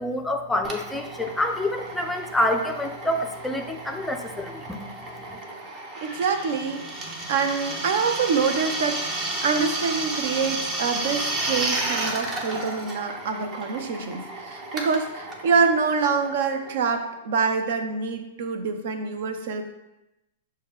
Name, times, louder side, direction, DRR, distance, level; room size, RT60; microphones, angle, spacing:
voice 1, 0.0-4.8, left 1 dB, 5° left, 3 dB, 0.4 m, -27 dB
Drill, 0.6-17.0, right 2 dB, 30° right, 0.8 m, -32 dB
voice 2, 6.0-6.8 7.3-19.6, right 5 dB, 60° right, 6 dB, 0.6 m, -26 dB
6.2 x 2.2 x 3.5 m, 0.93 s
hypercardioid pair, 110°, 0 cm